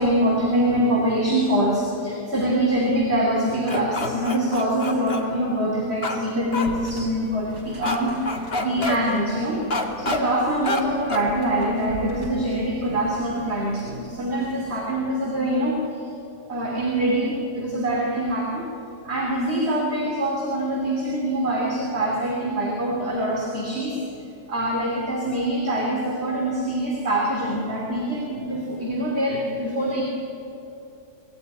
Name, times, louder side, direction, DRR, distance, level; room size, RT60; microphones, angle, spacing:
voice 1, 0.0-9.6 10.0-16.1 16.5-18.7 19.0-24.0 24.5-30.0, right 1 dB, 35° right, -1 dB, 3.1 m, -24 dB
sound 1, 3.7-5.2 6.0-6.2 6.5-6.7 7.8-8.0 8.3-9.0 9.7-10.2 10.7-10.8 11.1-11.3, left 2 dB, 35° left, 2.2 m, -27 dB
sound 2, 6.6-14.9, equal, 55° right, 4.8 m, -42 dB
25.5 x 19.5 x 9.7 m, 3.0 s
omnidirectional pair, 1.8 m